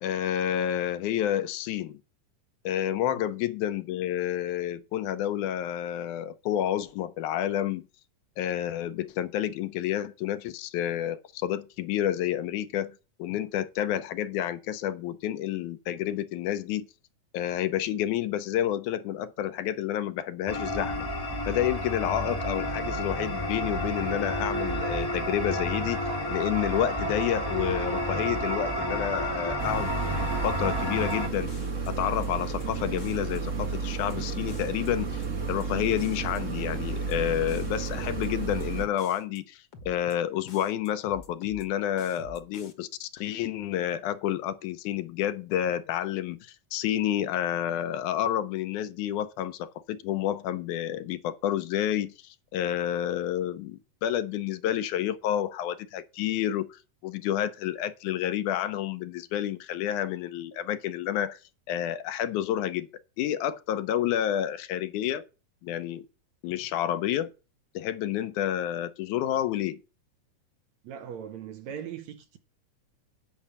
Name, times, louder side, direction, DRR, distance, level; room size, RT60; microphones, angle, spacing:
voice 1, 0.0-2.0 2.7-7.8 8.4-16.9 17.3-21.0 21.5-26.0 26.3-29.9 30.4-31.5 31.9-61.4 61.7-62.9 63.2-65.2 65.6-66.1 66.4-67.3 67.8-69.8, left 11 dB, 75° left, 2.0 m, -29 dB
sound 1, 20.5-31.3, equal, 15° left, 0.7 m, -30 dB
sound 2, 29.6-38.9, right 5 dB, 40° right, 1.0 m, -32 dB
sound 3, 31.1-31.2 31.5-32.7 33.0-33.4 33.7-34.1 34.5-35.7 36.0-36.4 36.7-37.1 37.5-38.7 39.0-39.4 39.7-40.1 40.5-41.7 42.0-42.7, left 3 dB, 50° left, 1.5 m, -47 dB
voice 2, 70.8-72.4, right 8 dB, 70° right, 2.0 m, -40 dB
8.8 x 5.4 x 7.2 m
omnidirectional pair, 3.7 m